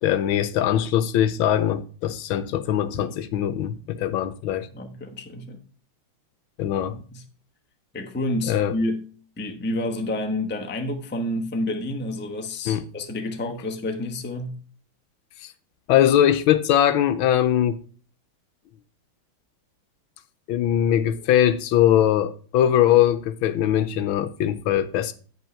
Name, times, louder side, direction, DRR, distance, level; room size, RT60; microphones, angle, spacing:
voice 1, 0.0-4.7 6.6-7.0 8.5-8.7 12.7-12.9 15.4-15.5 15.9-17.8 20.5-25.1, left 11 dB, 80° left, 1.4 m, -21 dB
voice 2, 4.7-5.6 6.9-7.2 7.9-9.1 9.4-14.6, left 1 dB, 10° left, 0.5 m, -29 dB
8.9 x 5.5 x 5.7 m
omnidirectional pair, 2.3 m